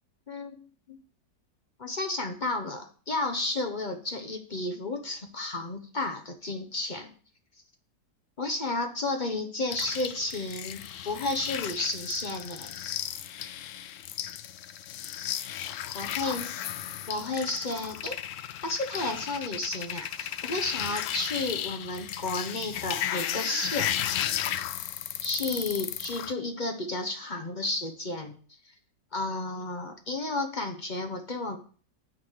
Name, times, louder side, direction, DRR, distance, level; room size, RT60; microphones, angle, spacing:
voice 1, 0.3-0.6 0.9-1.0 1.8-7.1 8.4-12.7 15.9-16.8 17.1-18.2 18.6-23.9 25.2-28.3 29.1-31.6, left 2 dB, 40° left, 4 dB, 0.7 m, -32 dB
sound 1, 9.7-26.3, left 10 dB, 75° left, 0.7 m, -35 dB
9.4 x 4.0 x 6.5 m, 0.42 s
omnidirectional pair, 1.9 m